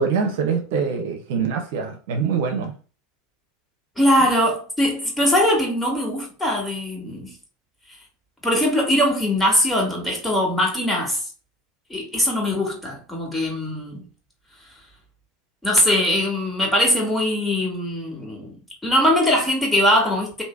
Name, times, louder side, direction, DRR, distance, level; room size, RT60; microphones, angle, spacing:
voice 1, 0.0-2.7, right 5 dB, 70° right, 0.8 m, -24 dB
voice 2, 4.0-7.3 8.4-11.2 11.9-14.0 15.6-18.5 18.8-20.4, left 1 dB, 5° left, 1.8 m, -21 dB
3.2 x 2.7 x 3.4 m
hypercardioid pair, 90°, 0 cm